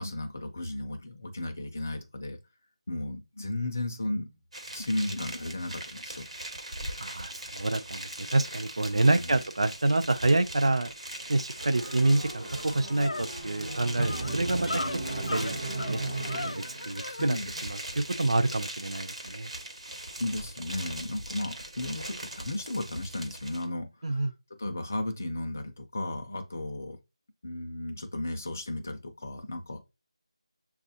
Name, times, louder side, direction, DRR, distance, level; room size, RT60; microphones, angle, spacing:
voice 1, 0.0-2.4 2.9-4.4 4.7-6.3 8.9-9.3 17.1-17.5 20.2-24.3 24.6-27.0 27.4-29.8, left 1 dB, 20° left, 0.4 m, -34 dB
sound 1, 4.5-23.7, right 1 dB, 80° right, 1.2 m, -40 dB
voice 2, 7.0-10.9 11.3-14.8 15.1-16.0 16.4-17.4 17.6-19.5 24.0-24.3, right 2 dB, 65° right, 0.4 m, -27 dB
sound 2, 11.6-17.2, right 2 dB, 30° right, 0.7 m, -36 dB
sound 3, 11.9-12.0 12.3-17.3, left 2 dB, 85° left, 0.4 m, -38 dB
6.7 x 2.4 x 2.6 m
figure-of-eight pair, 180°, 3 cm